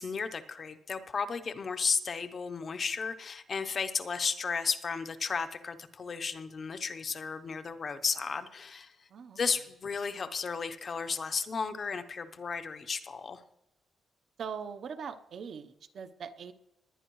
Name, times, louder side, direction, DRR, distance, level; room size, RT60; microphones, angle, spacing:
voice 1, 0.0-8.9 9.4-13.4, left 5 dB, 40° left, 10 dB, 0.8 m, -34 dB
voice 2, 14.4-16.5, right 6 dB, 60° right, 9 dB, 0.8 m, -41 dB
20.0 x 9.9 x 3.1 m, 0.91 s
cardioid pair, 130°, 0 cm